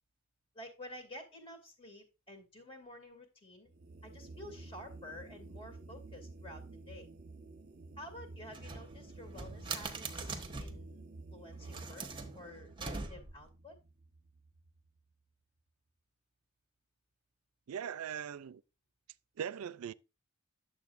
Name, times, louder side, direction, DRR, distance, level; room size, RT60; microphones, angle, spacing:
voice 1, 0.5-3.7 4.0-7.1 8.0-12.1 12.3-13.8, left 1 dB, 25° left, 2.4 m, -51 dB
sound 1, 3.7-15.0, right 2 dB, 50° right, 0.7 m, -51 dB
sound 2, 8.5-10.9 11.5-13.5, right 4 dB, 25° right, 1.1 m, -43 dB
voice 2, 17.7-18.6 19.4-19.9, right 8 dB, 85° right, 0.4 m, -40 dB
10.5 x 7.2 x 2.5 m
head